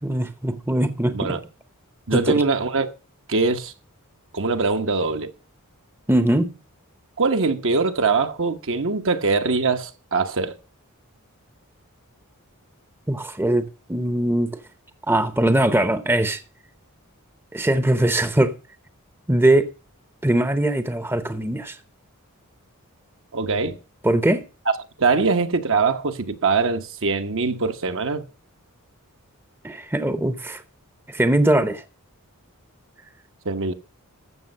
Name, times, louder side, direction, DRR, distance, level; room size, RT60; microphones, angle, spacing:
voice 1, 0.0-1.4 2.1-2.2 6.1-6.5 13.1-14.5 15.1-16.4 17.5-18.6 19.3-19.7 20.2-21.8 24.0-24.4 29.6-30.6 31.1-31.8, right 1 dB, 10° right, 0.8 m, -21 dB
voice 2, 2.1-2.9 3.3-3.7 4.3-5.3 7.2-10.5 23.3-23.8 25.0-28.2 33.4-33.7, right 4 dB, 60° right, 1.2 m, -22 dB
14.0 x 6.7 x 5.4 m
head